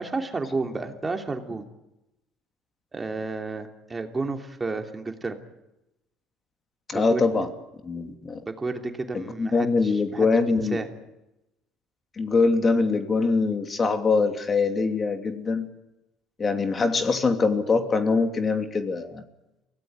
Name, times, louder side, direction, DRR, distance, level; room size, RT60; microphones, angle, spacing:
voice 1, 0.0-1.6 2.9-5.4 6.9-7.2 8.5-10.9, right 3 dB, 25° right, 4 dB, 3.0 m, -31 dB
voice 2, 6.9-7.5 7.8-8.4 9.1-10.8 12.2-15.7 16.4-19.2, left 4 dB, 35° left, 7 dB, 2.9 m, -23 dB
24.0 x 17.5 x 9.6 m, 0.92 s
supercardioid pair, 80°, 0 cm